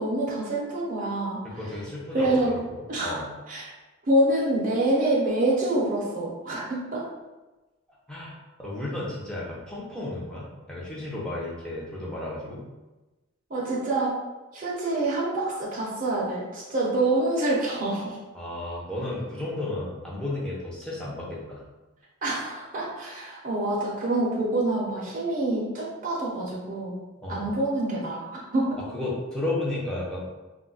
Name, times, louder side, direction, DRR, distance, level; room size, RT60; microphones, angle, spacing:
voice 1, 0.0-1.4 2.1-2.5 2.9-3.1 3.5-3.7 4.1-7.0 13.5-14.2 14.5-18.2 22.2-27.0 27.3-28.8, right 2 dB, 40° right, -5 dB, 0.7 m, -26 dB
voice 2, 1.4-3.3 8.1-12.7 18.3-21.6 27.2-27.5 28.9-30.3, left 2 dB, 5° left, -6 dB, 0.6 m, -33 dB
2.3 x 2.1 x 3.9 m, 1.1 s
head